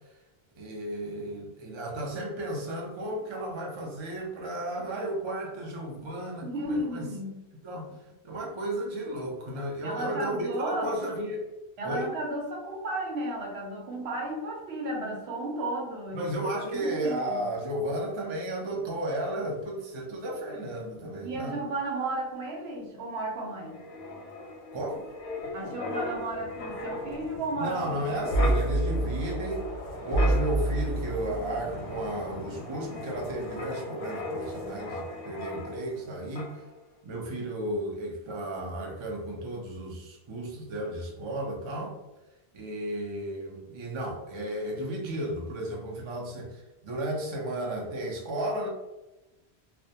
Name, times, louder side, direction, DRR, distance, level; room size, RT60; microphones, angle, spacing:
voice 1, 0.6-7.1 7.6-7.9 8.2-11.5 11.8-12.1 16.1-21.6 24.7-25.1 25.4-25.8 27.6-29.7 30.0-36.5 37.0-42.0 42.5-48.7, right 1 dB, 45° right, -1 dB, 0.4 m, -33 dB
voice 2, 6.4-7.4 9.8-11.2 11.8-17.4 21.2-23.8 25.5-27.9, right 1 dB, 75° right, -1 dB, 0.9 m, -34 dB
Wind, 23.7-36.1 36.4-36.6, right 1 dB, 55° left, 0.6 m, -32 dB
2.1 x 2.1 x 2.7 m, 1.0 s
omnidirectional pair, 1.1 m